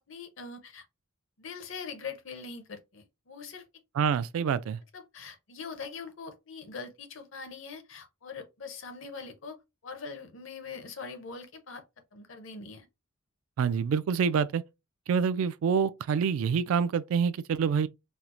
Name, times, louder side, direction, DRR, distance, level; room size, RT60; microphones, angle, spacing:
voice 1, 0.1-0.8 1.4-3.6 4.9-9.6 9.8-11.8 12.1-12.9, left 5 dB, 65° left, 0.7 m, -42 dB
voice 2, 3.9-4.8 13.6-14.6 15.1-17.9, right 6 dB, 80° right, 0.3 m, -26 dB
4.3 x 2.0 x 2.5 m
head